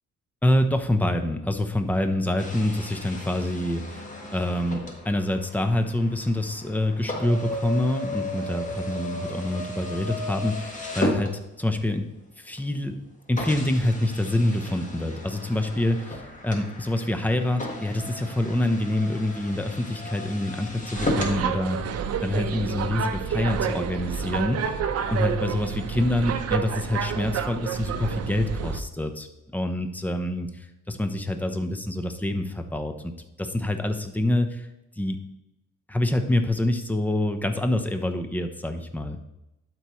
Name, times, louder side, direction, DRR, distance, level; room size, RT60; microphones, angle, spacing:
voice 1, 0.4-4.1 4.3-11.3 11.6-12.1 12.4-13.0 13.3-24.7 25.1-33.1 33.4-34.7 35.0-35.2 35.9-39.2, left 1 dB, 5° left, 7 dB, 0.8 m, -26 dB
sound 1, 2.4-11.9 12.6-12.7 13.4-21.4, left 1 dB, 25° left, 1.5 m, -35 dB
sound 2, 20.9-28.8, right 7 dB, 55° right, 0.7 m, -29 dB
12.0 x 4.6 x 3.1 m, 0.91 s
cardioid pair, 90°, 30 cm